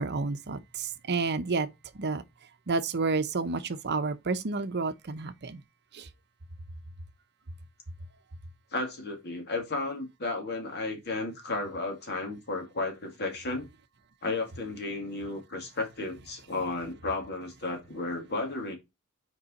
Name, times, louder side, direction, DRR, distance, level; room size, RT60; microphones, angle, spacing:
voice 1, 0.0-1.7 1.9-2.2 2.7-5.6 5.9-6.1, right 4 dB, 50° right, 0.8 m, -30 dB
voice 2, 8.7-13.7 14.2-18.8, left 3 dB, 50° left, 2.1 m, -33 dB
5.5 x 4.8 x 4.0 m
head